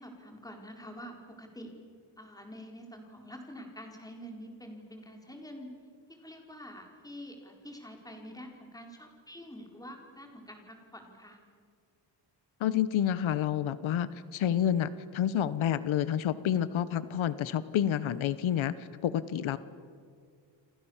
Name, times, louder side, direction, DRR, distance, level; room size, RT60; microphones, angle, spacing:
voice 1, 0.0-1.7 2.2-5.7 6.1-11.4, equal, 10° left, 2 dB, 4.5 m, -47 dB
voice 2, 12.6-18.7 19.0-19.6, left 10 dB, 85° left, 15 dB, 1.1 m, -29 dB
29.5 x 25.5 x 7.3 m, 2.1 s
wide cardioid pair, 140°, 46 cm